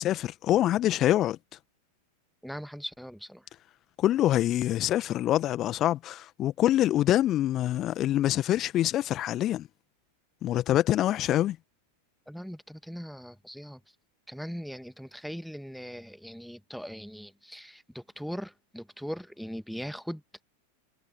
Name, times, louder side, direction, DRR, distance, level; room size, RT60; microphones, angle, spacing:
voice 1, 0.0-1.4 4.0-9.7 10.4-11.6, left 13 dB, 30° left, 1.5 m, -25 dB
voice 2, 2.4-3.4 12.3-13.8 14.3-20.4, equal, ahead, 1.6 m, -40 dB
figure-of-eight pair, 90°, 0 cm